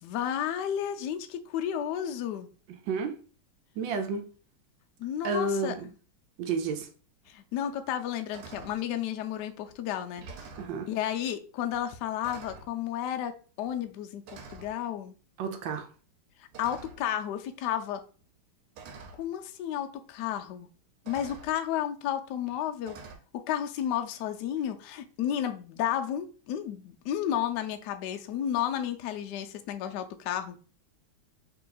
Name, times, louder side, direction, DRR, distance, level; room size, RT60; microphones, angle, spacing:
voice 1, 0.0-2.5 5.0-5.8 7.3-10.5 10.9-15.1 16.6-18.0 19.1-20.7 21.1-23.0 23.3-30.6, left 10 dB, 85° left, 7 dB, 0.9 m, -32 dB
voice 2, 3.8-4.2 5.2-5.7 6.4-6.9 10.6-10.9 15.4-15.9, right 4 dB, 75° right, 5 dB, 1.3 m, -30 dB
sound 1, 7.2-7.3 7.8-8.1 8.3-8.8 9.6-9.8 10.1-10.8 11.7-11.9 12.2-12.7 13.7-13.9 14.3-14.7 16.5-17.1 18.2-18.3 18.8-19.2 20.4-20.5 21.1-21.5 22.9-23.2, right 4 dB, 90° right, 1.6 m, -46 dB
3.3 x 2.9 x 3.8 m, 0.38 s
omnidirectional pair, 2.3 m